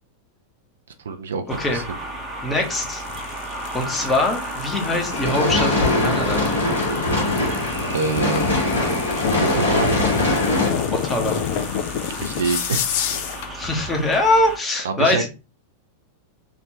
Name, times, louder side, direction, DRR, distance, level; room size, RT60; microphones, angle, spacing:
voice 1, 1.0-1.8 7.9-8.8 9.4-9.9 12.2-13.2 14.8-15.3, right 4 dB, 65° right, 6 dB, 0.5 m, -26 dB
sound 1, 1.5-14.6, right 1 dB, 20° right, 0.8 m, -34 dB
voice 2, 2.4-3.0 3.7-6.4 10.9-11.4 13.5-15.3, left 2 dB, 15° left, 2 dB, 1.0 m, -22 dB
sound 2, 2.6-13.5, left 8 dB, 50° left, 0.5 m, -29 dB
sound 3, 5.1-10.7, left 2 dB, 75° left, 1.6 m, -22 dB
3.4 x 2.5 x 3.1 m, 0.30 s
figure-of-eight pair, 90°, 0 cm